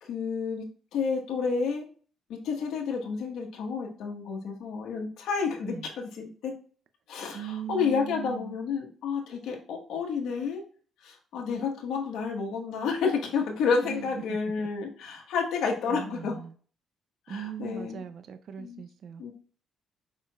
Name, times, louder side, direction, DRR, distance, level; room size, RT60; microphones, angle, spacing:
voice 1, 0.0-1.9 2.3-6.5 7.1-10.6 11.0-16.4 17.3-18.0 18.6-18.8 19.2-19.3, left 5 dB, 80° left, 1.2 m, -30 dB
voice 2, 7.3-8.6 13.8-14.7 15.9-16.5 17.3-19.3, right 9 dB, 65° right, 0.5 m, -39 dB
5.0 x 4.4 x 2.3 m
cardioid pair, 90°, 0 cm